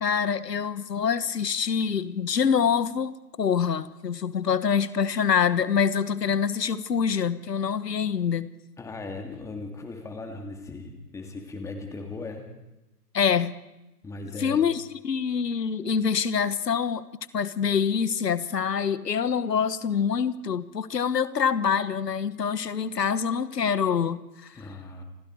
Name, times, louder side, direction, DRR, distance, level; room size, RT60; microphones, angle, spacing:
voice 1, 0.0-8.5 13.1-13.5 14.4-17.0 17.3-24.5, left 7 dB, 90° left, 1.6 m, -25 dB
voice 2, 8.8-12.5 14.0-14.6 24.5-25.0, left 3 dB, 5° left, 2.6 m, -38 dB
29.0 x 23.5 x 4.9 m
hypercardioid pair, 150°, 47 cm